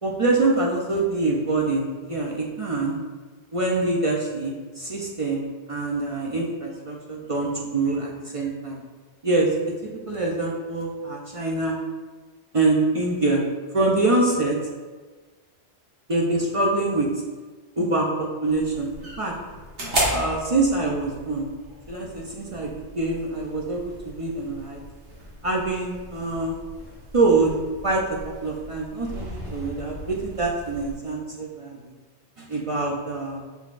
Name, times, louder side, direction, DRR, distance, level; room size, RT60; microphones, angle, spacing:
voice 1, 0.0-3.0 3.5-5.4 5.7-8.8 9.2-9.5 9.8-11.8 12.5-13.4 13.7-14.6 16.1-17.1 17.8-18.9 19.2-19.3 20.1-21.5 21.9-24.8 25.4-26.6 27.1-27.5 27.8-31.9 32.4-33.4, right 2 dB, 45° right, -2 dB, 0.4 m, -25 dB
sound 1, 18.5-31.0, right 1 dB, 80° right, 1.5 m, -35 dB
5.5 x 4.0 x 2.4 m, 1.4 s
omnidirectional pair, 1.1 m